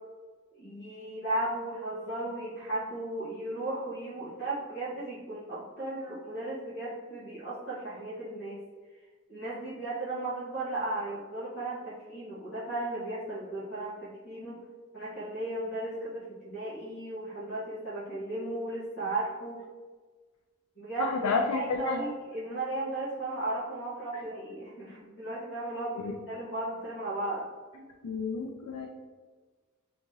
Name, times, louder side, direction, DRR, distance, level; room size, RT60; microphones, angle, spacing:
voice 1, 0.5-8.6 9.3-14.6 14.9-19.6 20.8-27.4 27.7-27.8, right 2 dB, 50° left, -10 dB, 1.0 m, -35 dB
voice 2, 21.0-22.0 25.9-26.1 28.0-28.9, left 4 dB, 85° left, 2 dB, 0.4 m, -30 dB
2.8 x 2.6 x 3.7 m, 1.4 s
head